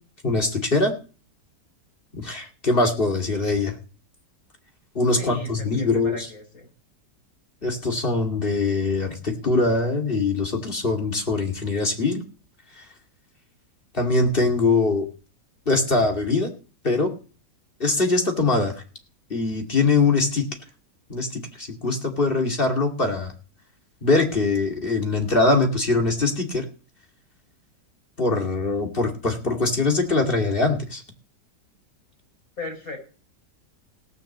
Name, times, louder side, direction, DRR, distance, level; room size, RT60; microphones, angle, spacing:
voice 1, 0.2-0.9 2.1-3.8 4.9-6.3 7.6-12.2 12.8-12.9 13.9-15.1 15.7-16.5 16.8-17.1 17.8-18.7 19.3-20.5 21.1-23.3 24.0-26.7 28.2-31.0, left 3 dB, 30° left, 2 dB, 2.6 m, -22 dB
voice 2, 5.1-6.7 32.6-33.0, left 2 dB, 55° left, 2 dB, 6.0 m, -36 dB
17.5 x 6.8 x 7.3 m, 0.36 s
omnidirectional pair, 1.8 m